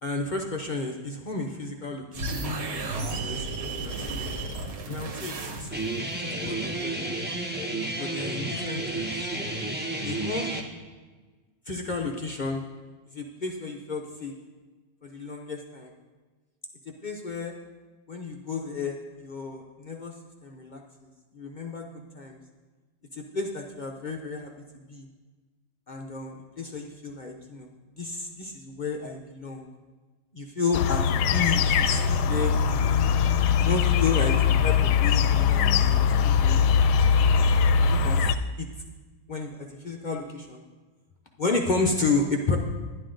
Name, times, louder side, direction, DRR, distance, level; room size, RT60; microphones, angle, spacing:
voice 1, 0.0-3.5 3.8-4.1 4.9-5.9 6.4-7.0 8.0-9.2 10.0-10.5 11.7-12.6 13.1-14.3 15.0-15.9 17.0-17.6 18.1-20.1 20.4-20.8 21.3-22.4 23.1-25.1 25.9-27.7 28.0-29.7 30.3-31.0 31.3-33.1 33.6-36.9 37.7-38.3 38.6-38.7 39.3-40.6 41.4-42.6, left 3 dB, 60° left, 1 dB, 0.5 m, -32 dB
sound 1, 2.1-6.0, right 2 dB, 70° right, 1.7 m, -33 dB
Guitar, 5.7-10.6, right 2 dB, 10° right, 0.6 m, -31 dB
sound 2, 30.7-38.3, left 6 dB, 75° left, 1.1 m, -21 dB
11.0 x 11.0 x 3.8 m, 1.3 s
omnidirectional pair, 1.9 m